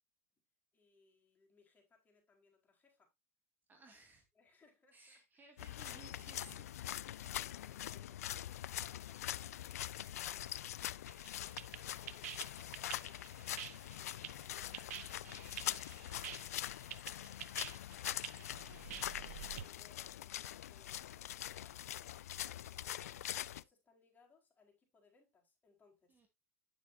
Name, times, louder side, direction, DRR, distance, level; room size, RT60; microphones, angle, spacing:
voice 1, 0.7-3.1 3.9-4.0 4.3-5.5 7.1-10.7 19.5-22.1 22.6-26.2, left 4 dB, 20° left, 4.4 m, -70 dB
voice 2, 3.7-4.2 4.9-6.7 17.2-17.5 26.1-26.3, right 4 dB, 25° right, 2.2 m, -60 dB
sound 1, 5.6-23.6, left 12 dB, 85° left, 0.4 m, -43 dB
sound 2, 11.1-19.6, right 13 dB, 80° right, 0.6 m, -48 dB
10.0 x 7.1 x 2.7 m
hypercardioid pair, 100°, 8 cm